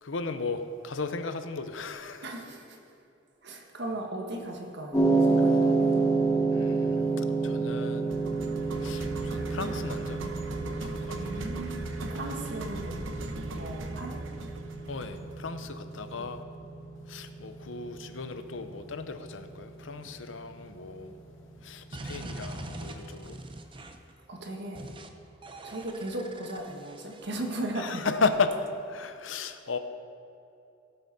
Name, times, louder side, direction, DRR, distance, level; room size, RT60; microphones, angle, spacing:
voice 1, 0.0-2.2 6.5-8.1 8.8-10.2 10.8-11.5 14.9-16.4 17.1-21.1 21.6-23.4 27.8-28.5 28.9-29.8, left 4 dB, 75° left, 9 dB, 0.7 m, -35 dB
voice 2, 2.2-2.8 3.4-6.1 11.2-13.0 13.5-14.2 16.1-16.3 24.3-24.9 25.6-28.0, right 1 dB, 60° right, 1 dB, 1.5 m, -37 dB
sound 1, 4.9-23.2, right 3 dB, 20° left, 2.4 m, -30 dB
sound 2, 8.1-16.2, right 1 dB, 85° right, 1.0 m, -39 dB
sound 3, 21.9-24.1 24.8-25.1 25.4-27.3, right 2 dB, 25° right, 0.7 m, -42 dB
17.0 x 7.9 x 4.2 m, 2.8 s
head